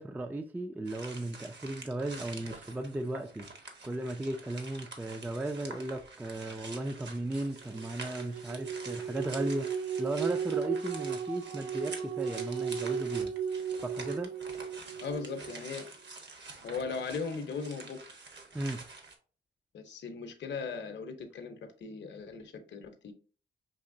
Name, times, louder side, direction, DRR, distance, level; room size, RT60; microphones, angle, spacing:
voice 1, 0.0-13.3 13.8-14.3 18.5-18.8, right 1 dB, 10° right, 0.3 m, -36 dB
sound 1, 0.9-19.1, right 3 dB, 55° right, 1.0 m, -47 dB
sound 2, 7.7-15.6, right 7 dB, 75° right, 0.5 m, -35 dB
voice 2, 15.0-15.9 16.6-18.0 19.7-23.1, left 5 dB, 55° left, 0.7 m, -38 dB
5.4 x 2.8 x 2.6 m
cardioid pair, 90°, 21 cm